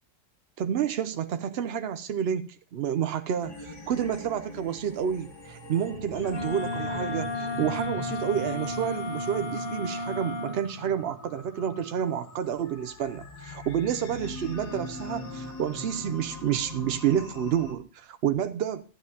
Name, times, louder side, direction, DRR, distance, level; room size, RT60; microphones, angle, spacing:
voice 1, 0.6-18.8, right 9 dB, 75° right, 0.5 m, -29 dB
sound 1, 3.4-17.7, left 2 dB, 90° left, 2.6 m, -41 dB
Wind instrument woodwind instrument, 6.2-10.6, left 2 dB, 40° left, 0.4 m, -33 dB
12.5 x 9.7 x 2.8 m
omnidirectional pair, 1.7 m